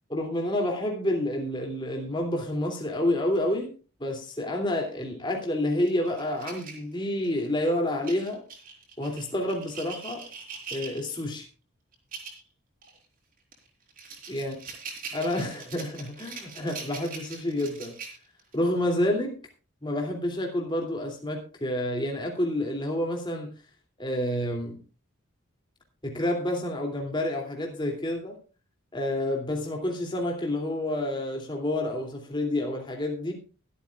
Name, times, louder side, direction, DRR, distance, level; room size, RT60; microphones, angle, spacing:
voice 1, 0.1-3.7 4.0-8.4 9.0-10.2 10.7-11.5 14.3-14.5 15.1-18.0 18.5-19.4 19.8-23.5 24.0-24.8 26.0-28.4 28.9-33.3, left 1 dB, 20° left, 2.8 m, -29 dB
sound 1, 5.9-7.5 8.0-11.3 11.9-12.4 12.8-13.0 13.5-18.5, right 5 dB, 40° right, 4.4 m, -42 dB
23.0 x 8.5 x 2.4 m
head